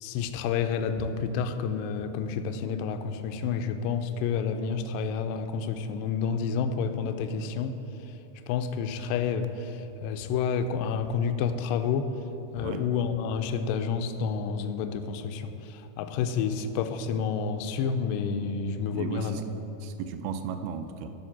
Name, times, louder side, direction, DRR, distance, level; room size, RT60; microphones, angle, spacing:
voice 1, 0.0-7.8 8.5-12.1 12.5-19.4, left 6 dB, 85° left, 8 dB, 2.0 m, -29 dB
voice 2, 18.9-19.4 19.8-21.1, right 7 dB, 85° right, 8 dB, 2.4 m, -35 dB
12.5 x 4.3 x 5.9 m, 2.9 s
omnidirectional pair, 4.4 m